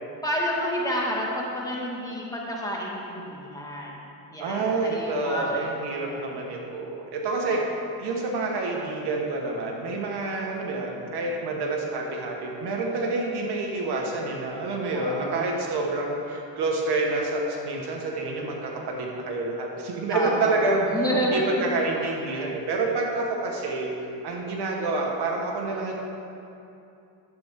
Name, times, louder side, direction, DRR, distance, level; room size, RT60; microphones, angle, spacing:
voice 1, 0.2-3.9 4.3-6.3 7.5-7.6 14.9-15.5 20.1-21.5, equal, 10° left, -4 dB, 2.0 m, -30 dB
voice 2, 4.4-20.9 21.2-26.0, right 3 dB, 65° right, 0 dB, 1.6 m, -28 dB
11.5 x 8.0 x 3.7 m, 2.7 s
cardioid pair, 90°, 43 cm